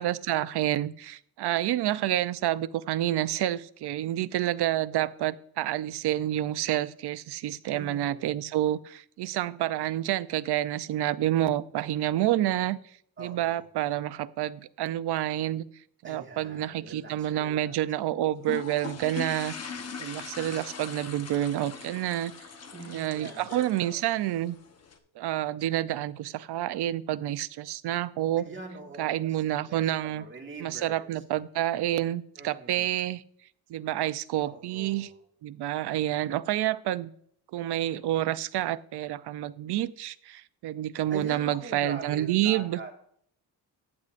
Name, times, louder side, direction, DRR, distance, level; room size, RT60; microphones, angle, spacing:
voice 1, 0.0-12.8 13.2-15.6 16.0-19.7 20.0-22.3 22.9-24.6 25.2-28.5 29.0-30.3 30.6-33.2 33.7-35.1 35.4-37.1 37.5-42.8, right 13 dB, 70° right, 0.6 m, -29 dB
voice 2, 7.7-8.3 13.2-13.7 16.0-17.8 22.7-24.0 28.4-29.4 29.6-31.1 32.4-32.9 34.4-35.2 41.1-42.9, right 3 dB, 30° right, 1.9 m, -43 dB
sound 1, 18.4-25.0, left 6 dB, 40° left, 1.0 m, -41 dB
14.5 x 9.8 x 2.5 m
cardioid pair, 155°, 41 cm